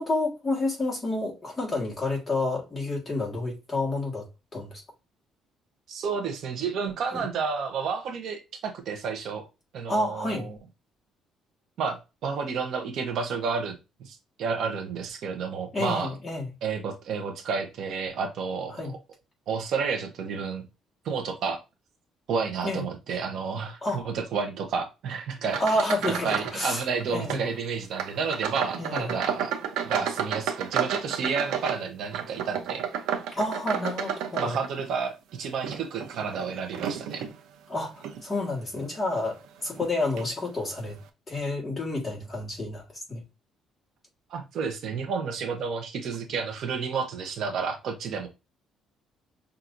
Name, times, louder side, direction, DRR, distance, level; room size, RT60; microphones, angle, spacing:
voice 1, 0.0-4.8 7.1-7.2 9.9-10.5 15.7-16.5 18.7-18.9 22.6-22.8 23.8-24.1 25.6-27.5 28.8-29.1 33.3-34.6 37.7-41.0 41.3-43.2, left 2 dB, 15° left, 1.6 m, -29 dB
voice 2, 5.9-9.4 9.7-10.6 11.8-13.7 14.0-16.1 16.6-18.9 19.5-20.7 21.0-21.6 22.3-25.8 26.2-29.6 29.8-32.8 34.4-37.3 44.3-48.3, right 5 dB, 55° right, 0.9 m, -31 dB
sound 1, 25.4-26.6 26.9-27.4 27.9-35.0 35.5-37.3 38.0-38.2 38.8-38.9 39.8-39.9 40.2-40.3, right 8 dB, 90° right, 0.7 m, -31 dB
5.8 x 2.7 x 2.6 m
cardioid pair, 165°, 0 cm